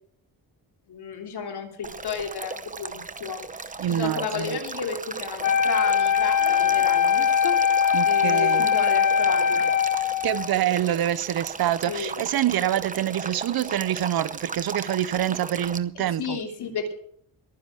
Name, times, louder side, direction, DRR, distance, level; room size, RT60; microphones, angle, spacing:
voice 1, 0.9-3.4 3.9-7.6 8.0-9.7 11.9-12.1 16.2-16.9, left 6 dB, 75° left, 3.1 m, -32 dB
Male speech man speaking / Stream / Trickle dribble, 1.8-15.8, right 4 dB, 20° right, 0.8 m, -36 dB
voice 2, 3.8-4.6 7.9-8.7 10.2-16.4, right 11 dB, 65° right, 0.7 m, -26 dB
Wind instrument woodwind instrument, 5.4-10.5, left 7 dB, 50° left, 0.9 m, -21 dB
22.0 x 10.0 x 4.8 m
wide cardioid pair, 150°, 39 cm